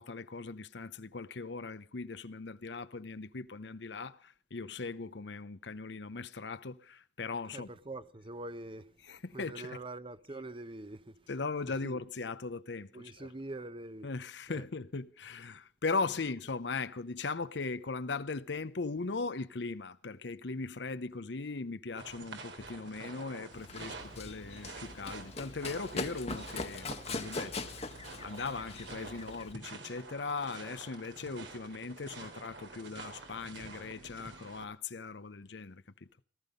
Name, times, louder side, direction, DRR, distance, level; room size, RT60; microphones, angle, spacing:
voice 1, 0.0-7.7 9.1-9.8 11.3-13.3 14.0-27.7 28.2-35.8, left 4 dB, 70° left, 0.8 m, -39 dB
voice 2, 7.5-8.9 9.3-11.2 11.8-12.0 12.9-14.1 14.5-14.6, right 2 dB, 30° right, 1.0 m, -44 dB
sound 1, 22.0-34.6, right 3 dB, 90° right, 3.5 m, -48 dB
Run, 23.5-29.5, left 3 dB, 35° left, 1.3 m, -41 dB
18.5 x 13.5 x 5.3 m
head